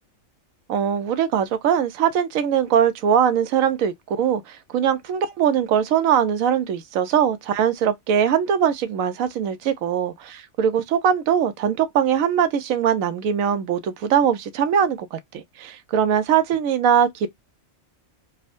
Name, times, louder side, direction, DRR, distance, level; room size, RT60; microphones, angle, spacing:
voice 1, 0.7-17.3, right 8 dB, 85° right, 1.0 m, -21 dB
3.5 x 2.1 x 2.4 m
omnidirectional pair, 1.4 m